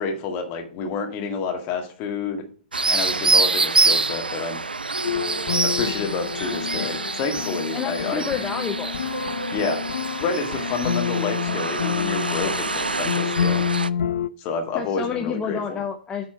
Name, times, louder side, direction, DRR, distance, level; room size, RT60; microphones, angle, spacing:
voice 1, 0.0-2.4 2.9-4.6 5.6-8.2 9.5-9.8 10.2-13.7 14.4-15.8, left 4 dB, 35° left, 4 dB, 1.9 m, -29 dB
sound 1, 2.7-13.9, right 3 dB, 85° right, 0.3 m, -26 dB
sound 2, 5.0-14.3, left 8 dB, 65° left, 0.4 m, -28 dB
voice 2, 7.7-9.0 12.4-12.6 14.7-16.3, left 7 dB, 15° left, 4 dB, 0.8 m, -29 dB
9.1 x 4.3 x 6.0 m, 0.42 s
figure-of-eight pair, 115°, 5 cm